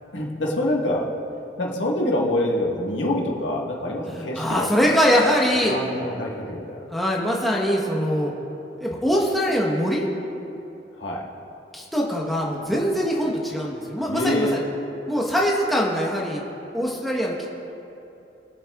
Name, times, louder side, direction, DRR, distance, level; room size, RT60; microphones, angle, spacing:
voice 1, 0.1-1.1 1.6-5.4 5.7-6.8 11.0-11.2 14.1-14.6, left 1 dB, 90° left, -2 dB, 1.5 m, -26 dB
voice 2, 4.0-6.2 6.9-8.3 8.8-10.1 11.7-14.6 15.1-16.4 16.7-17.5, equal, ahead, -3 dB, 1.0 m, -23 dB
22.0 x 7.4 x 2.3 m, 2.8 s
head